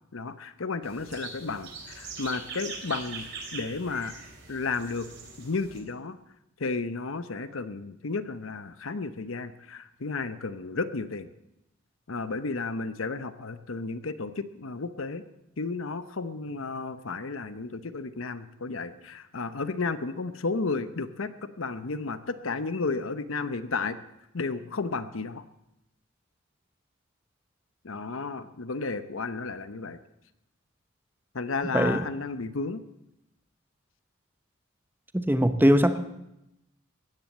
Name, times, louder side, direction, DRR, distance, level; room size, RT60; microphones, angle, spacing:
voice 1, 0.1-3.3 3.5-4.2 4.5-5.1 5.4-6.2 6.6-11.3 12.1-15.2 15.6-24.0 24.3-25.4 27.8-30.0 31.3-32.8, left 4 dB, 75° left, 12 dB, 0.8 m, -33 dB
sound 1, 0.8-5.8, right 4 dB, 55° right, 3.7 m, -42 dB
voice 2, 31.7-32.0 35.1-36.0, equal, 10° right, 10 dB, 0.9 m, -21 dB
16.5 x 10.5 x 7.4 m, 0.86 s
head